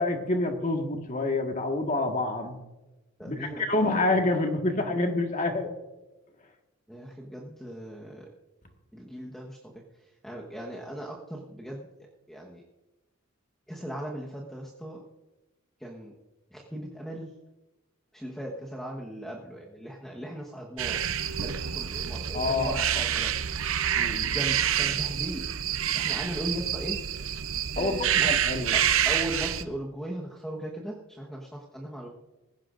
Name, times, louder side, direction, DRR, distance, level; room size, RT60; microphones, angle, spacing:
voice 1, 0.0-2.6 3.2-5.7 22.3-23.0 24.0-24.3 24.8-24.9 27.8-28.8, left 2 dB, 35° left, 3 dB, 1.6 m, -27 dB
voice 2, 3.2-4.0 6.9-8.3 8.9-9.8 10.2-11.9 12.3-12.6 13.7-15.0 15.8-16.1 16.5-17.3 18.1-21.0 21.4-23.4 24.3-25.4 25.9-27.0 27.8-32.1, equal, ahead, -3 dB, 1.2 m, -38 dB
sound 1, 20.8-29.6, right 9 dB, 65° right, 0.7 m, -28 dB
19.0 x 16.5 x 2.6 m, 1.1 s
head